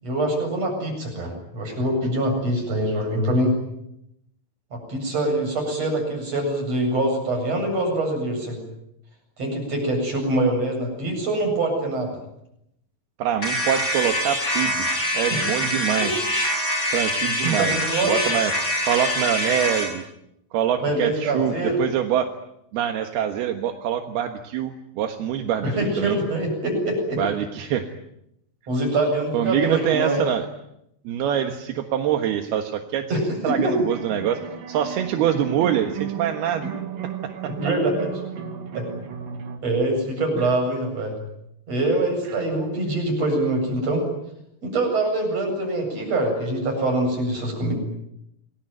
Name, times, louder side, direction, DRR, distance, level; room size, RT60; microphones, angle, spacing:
voice 1, 0.0-3.6 4.7-8.6 9.4-12.2 15.3-15.4 17.4-18.4 20.8-21.8 25.6-27.2 28.7-30.2 33.1-33.7 37.6-38.1 38.7-38.9 39.6-41.1 41.7-44.0 44.6-47.7, right 1 dB, 40° right, 2 dB, 9.1 m, -24 dB
voice 2, 13.2-14.9 15.1-16.3 16.9-17.8 18.0-18.5 18.8-20.0 20.5-22.3 22.7-26.2 27.2-27.9 29.3-30.5 31.0-33.1 33.4-34.4 34.7-36.7 37.4-37.5 40.4-40.5, right 9 dB, 75° right, 5 dB, 3.4 m, -24 dB
sound 1, 13.4-19.9, equal, 25° left, 7.9 m, -25 dB
sound 2, 33.7-39.6, right 8 dB, 60° right, 4.0 m, -34 dB
28.5 x 21.0 x 9.3 m, 0.81 s
omnidirectional pair, 4.6 m